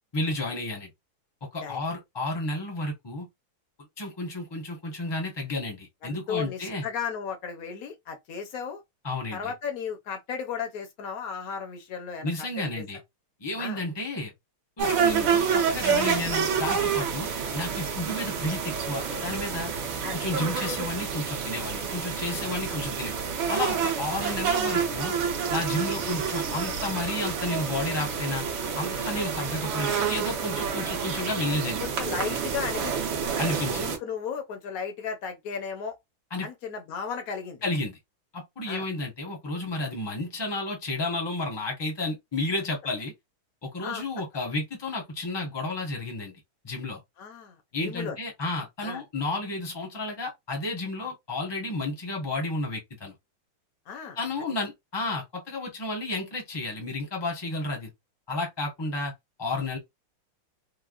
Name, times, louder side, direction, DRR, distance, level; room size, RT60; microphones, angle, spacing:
voice 1, 0.1-0.9 1.5-3.3 4.0-6.8 9.0-9.5 12.2-13.0 13.4-14.3 14.8-17.3 17.5-19.7 20.1-23.1 23.5-25.1 25.5-28.4 28.8-31.8 33.4-33.9 36.3-36.5 37.6-38.0 38.3-43.1 43.6-47.0 47.7-53.1 54.2-57.9 58.3-59.1 59.4-59.8, left 2 dB, 20° left, 0.6 m, -32 dB
voice 2, 6.0-8.8 9.3-12.3 12.6-12.7 13.6-13.8 20.0-20.2 29.2-29.3 31.8-33.1 33.7-35.9 36.4-37.6 38.7-38.9 43.8-44.0 47.2-48.2 48.8-49.0 53.9-54.2, left 7 dB, 60° left, 0.9 m, -35 dB
sound 1, 14.8-34.0, right 6 dB, 70° right, 1.7 m, -28 dB
4.5 x 2.0 x 2.4 m
omnidirectional pair, 2.3 m